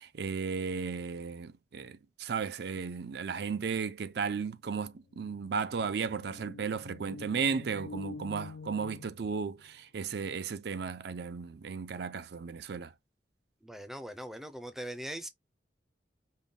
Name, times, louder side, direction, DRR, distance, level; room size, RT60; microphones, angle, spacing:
voice 1, 0.0-12.9, right 5 dB, 60° right, 0.4 m, -35 dB
sound 1, 4.8-9.8, left 3 dB, 70° left, 0.4 m, -47 dB
voice 2, 13.6-15.3, right 1 dB, ahead, 0.5 m, -41 dB
5.4 x 2.2 x 3.6 m
head